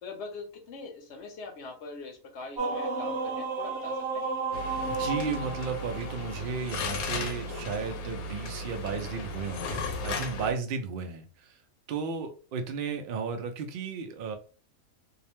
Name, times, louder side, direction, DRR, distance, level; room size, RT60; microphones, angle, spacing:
voice 1, 0.0-4.2, left 3 dB, 60° left, 3 dB, 0.9 m, -42 dB
sound 1, 2.6-6.8, right 3 dB, 55° right, 0.9 m, -33 dB
sound 2, 4.5-10.5, left 2 dB, 85° left, 1.0 m, -35 dB
voice 2, 4.9-11.6 11.9-14.4, right 5 dB, 75° right, 6 dB, 0.5 m, -34 dB
2.7 x 2.1 x 2.9 m, 0.36 s
omnidirectional pair, 1.5 m